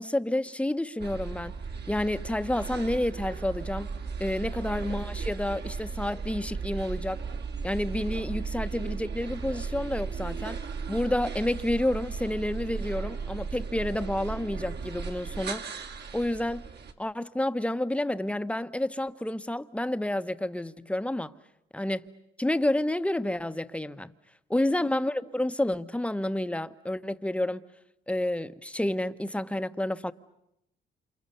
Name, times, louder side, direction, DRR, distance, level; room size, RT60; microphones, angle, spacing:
voice 1, 0.0-1.5 1.9-3.9 4.2-7.2 7.6-10.6 10.9-15.6 16.1-16.6 17.0-21.3 21.7-22.1 22.4-24.1 24.5-27.6 28.1-30.1, left 1 dB, 5° left, 1.1 m, -29 dB
sound 1, 1.0-16.9, right 5 dB, 55° right, 2.6 m, -36 dB
28.5 x 28.5 x 6.9 m
cardioid pair, 90°, 20 cm